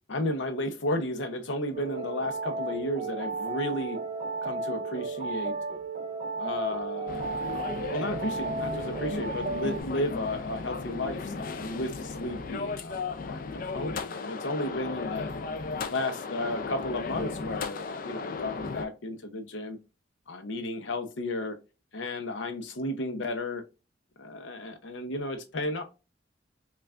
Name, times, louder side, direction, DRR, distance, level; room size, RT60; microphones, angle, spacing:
voice 1, 0.1-4.0 4.4-5.6 6.4-7.4 7.9-15.3 15.9-19.8 20.3-21.6 21.9-23.6 24.2-25.8, left 1 dB, 80° left, 0.8 m, -33 dB
sound 1, 1.7-9.8, right 4 dB, 35° right, 0.5 m, -34 dB
sound 2, 7.1-18.9, left 4 dB, 45° left, 0.4 m, -35 dB
5.5 x 2.4 x 2.4 m
head